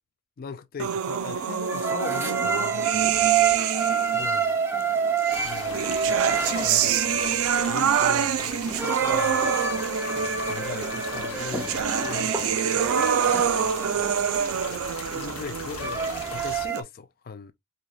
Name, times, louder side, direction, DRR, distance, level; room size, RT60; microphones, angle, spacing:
voice 1, 0.4-3.5 4.1-4.6 5.4-9.5 10.2-12.9 15.1-17.5, left 5 dB, 40° left, 0.4 m, -39 dB
sound 1, 0.8-4.3 5.3-16.8, right 8 dB, 65° right, 0.4 m, -26 dB
sound 2, 1.1-16.8, right 5 dB, 10° right, 0.7 m, -29 dB
sound 3, 5.3-16.7, left 4 dB, 70° left, 0.9 m, -39 dB
4.6 x 2.9 x 2.3 m
head